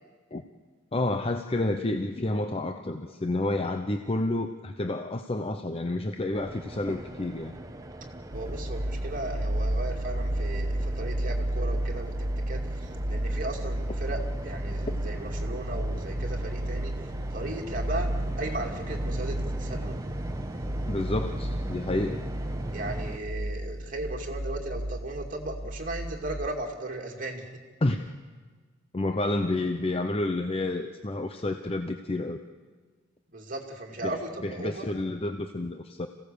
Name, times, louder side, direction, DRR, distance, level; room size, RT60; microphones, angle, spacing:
voice 1, 0.9-7.5 20.9-22.2 27.8-28.0 28.9-32.4 34.0-34.1 34.4-36.1, left 2 dB, 30° left, 7 dB, 0.7 m, -29 dB
sound 1, 6.3-23.2, right 1 dB, 15° right, 1.0 m, -40 dB
voice 2, 8.3-12.1 12.5-18.1 18.4-20.0 22.7-27.5 33.3-34.9, right 2 dB, 40° right, 1 dB, 2.5 m, -36 dB
sound 2, 8.3-26.5, right 1 dB, 80° right, 1.6 m, -32 dB
27.5 x 16.5 x 6.9 m, 1.4 s
head